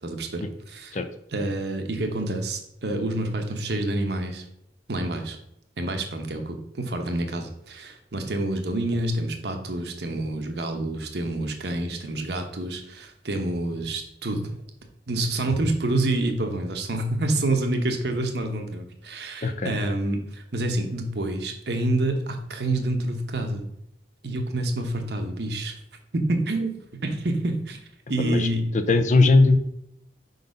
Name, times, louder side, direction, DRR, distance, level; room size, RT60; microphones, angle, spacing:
voice 1, 0.0-1.0 1.3-4.4 4.9-5.4 5.8-14.5 15.1-23.6 24.2-25.7 26.1-26.7 27.0-27.8 28.1-28.7 29.2-29.3, right 2 dB, 65° right, 5 dB, 0.9 m, -27 dB
voice 2, 19.4-19.8 28.2-28.5 28.7-29.6, left 3 dB, 45° left, 9 dB, 0.5 m, -19 dB
5.3 x 4.0 x 5.2 m, 0.75 s
head